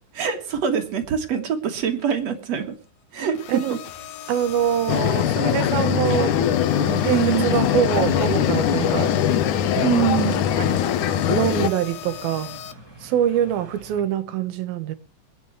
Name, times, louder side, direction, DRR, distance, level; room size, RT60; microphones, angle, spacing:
voice 1, 0.1-2.7 3.1-3.4 3.7-3.8 7.0-7.6 9.8-10.4, right 8 dB, 55° right, 2.5 m, -24 dB
sound 1, 3.3-12.7, left 11 dB, 90° left, 3.0 m, -38 dB
voice 2, 4.3-6.3 6.7-9.1 9.7-10.1 10.6-12.6 13.0-15.0, right 10 dB, 85° right, 2.9 m, -25 dB
sound 2, 4.4-14.0, right 2 dB, 10° left, 1.9 m, -41 dB
sound 3, 4.9-11.7, left 10 dB, 70° left, 2.2 m, -21 dB
26.0 x 9.4 x 3.1 m
omnidirectional pair, 4.1 m